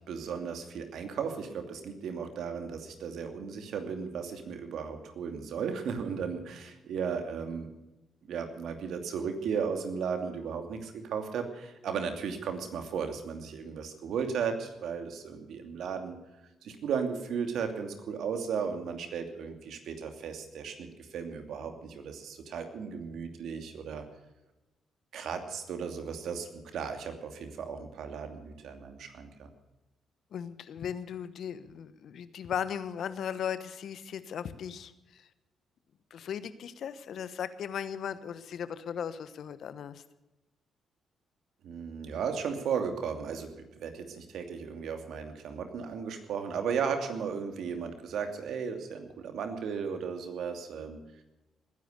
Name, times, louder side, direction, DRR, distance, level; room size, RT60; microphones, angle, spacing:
voice 1, 0.1-7.7 8.3-16.2 16.6-24.0 25.1-29.5 41.6-51.0, right 6 dB, 70° right, 6 dB, 2.6 m, -35 dB
voice 2, 30.3-35.3 36.1-40.0, left 8 dB, 65° left, 14 dB, 1.1 m, -37 dB
20.5 x 10.5 x 6.7 m, 1.0 s
hypercardioid pair, 50°, 0 cm